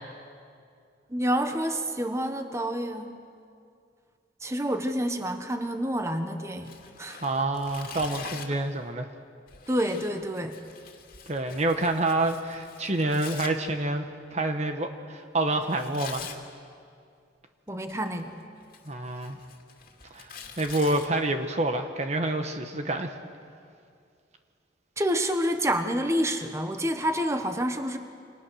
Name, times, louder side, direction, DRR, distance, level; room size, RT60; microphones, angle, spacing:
voice 1, 1.1-3.1 4.4-6.7 7.0-7.2 9.7-10.5 17.7-18.3 25.0-28.0, equal, 15° right, 7 dB, 1.3 m, -28 dB
Tearing, 6.6-8.6 9.5-13.5 15.6-16.4 17.7-18.2 18.6-21.1, left 6 dB, 50° left, 2.5 m, -44 dB
voice 2, 7.2-9.1 11.3-14.0 14.3-16.3 18.8-19.4 20.1-20.3 20.6-23.2, right 2 dB, 40° right, 6 dB, 1.2 m, -27 dB
28.0 x 24.5 x 6.4 m, 2.3 s
head